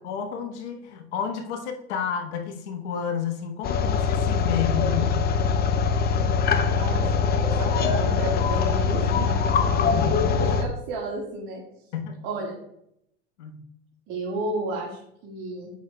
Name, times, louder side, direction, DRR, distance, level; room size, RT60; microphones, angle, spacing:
voice 1, 0.0-5.3 11.9-12.2 13.4-13.6, left 7 dB, 75° left, 3 dB, 1.3 m, -31 dB
sound 1, 3.6-10.6, left 5 dB, 25° left, 0.6 m, -22 dB
voice 2, 6.6-9.3 10.3-11.6 12.2-12.6 14.1-15.7, right 2 dB, 55° right, -3 dB, 1.7 m, -32 dB
8.1 x 6.3 x 2.2 m, 0.77 s
supercardioid pair, 110°, 35 cm